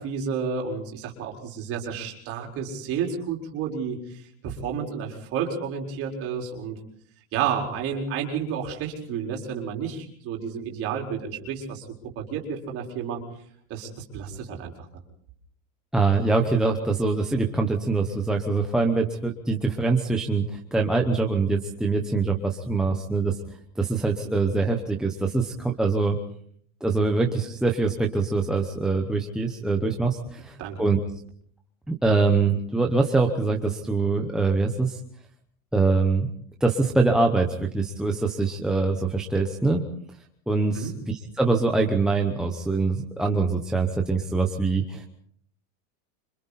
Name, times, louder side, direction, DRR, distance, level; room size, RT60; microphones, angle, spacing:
voice 1, 0.0-6.7 7.3-11.9 12.2-13.2 13.7-14.7 30.6-30.8 40.7-40.9, right 7 dB, 30° right, 1 dB, 4.5 m, -31 dB
voice 2, 15.9-23.4 23.8-26.2 26.8-31.0 31.9-35.0 35.7-36.3 36.6-39.8 40.5-45.1, right 3 dB, ahead, 1 dB, 0.9 m, -24 dB
27.5 x 25.5 x 4.2 m, 0.63 s
supercardioid pair, 170°, 43 cm